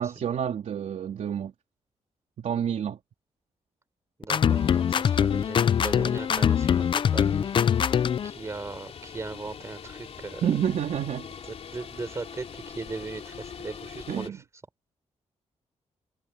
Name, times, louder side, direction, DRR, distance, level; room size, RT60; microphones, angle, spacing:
voice 1, 0.0-1.5 2.4-3.0 10.4-11.3 14.1-14.4, right 9 dB, 90° right, 3.5 m, -28 dB
sound 1, 4.2-8.3, left 8 dB, 45° left, 0.3 m, -23 dB
voice 2, 4.2-7.5 7.8-7.9 8.2-10.4 11.7-14.3, right 3 dB, 25° right, 4.0 m, -38 dB
sound 2, 4.5-14.3, left 7 dB, 60° left, 3.5 m, -43 dB
wide cardioid pair, 180°, 12 cm